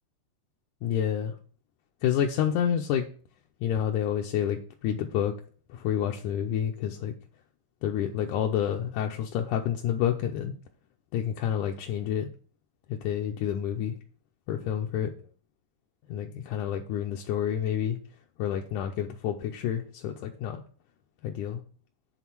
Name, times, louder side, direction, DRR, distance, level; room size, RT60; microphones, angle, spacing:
voice 1, 0.8-1.4 2.0-3.0 3.6-5.3 5.7-7.1 7.8-10.5 11.1-12.3 12.9-14.0 14.5-15.1 16.1-18.0 18.4-20.6 21.2-21.6, left 9 dB, 80° left, 1 dB, 2.1 m, -29 dB
9.1 x 3.7 x 5.9 m, 0.42 s
omnidirectional pair, 3.5 m